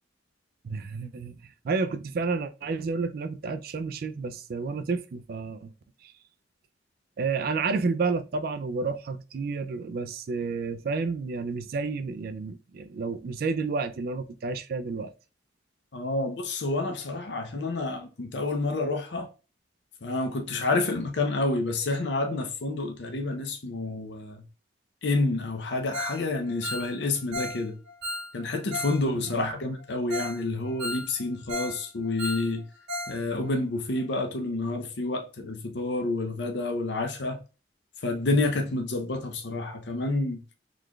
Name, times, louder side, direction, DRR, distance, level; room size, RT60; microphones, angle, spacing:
voice 1, 0.6-5.7 6.0-6.1 7.2-15.1 29.1-29.5, right 4 dB, 55° right, 0.3 m, -30 dB
voice 2, 15.9-19.3 20.0-24.4 25.0-27.8 28.3-32.6 33.1-37.4 38.0-40.4, left 2 dB, 70° left, 0.6 m, -29 dB
Ringtone, 25.9-26.2 26.5-29.0 29.3-29.4 29.8-29.9 30.1-30.4 30.7-31.8 32.0-33.2 33.4-33.5 34.0-34.1, left 1 dB, 75° right, 1.5 m, -35 dB
3.9 x 3.2 x 2.2 m
head